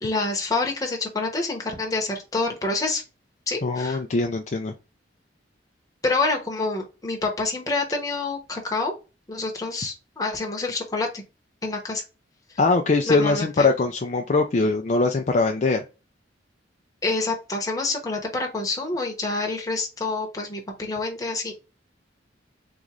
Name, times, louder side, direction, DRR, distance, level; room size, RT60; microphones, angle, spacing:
voice 1, 0.0-3.0 3.5-4.0 6.0-8.9 9.3-11.2 11.6-12.0 13.1-13.7 17.0-21.5, left 3 dB, 20° left, 1 dB, 1.0 m, -27 dB
voice 2, 3.6-4.7 12.6-15.8, left 3 dB, 40° left, 3 dB, 0.4 m, -22 dB
3.8 x 3.0 x 3.7 m, 0.30 s
head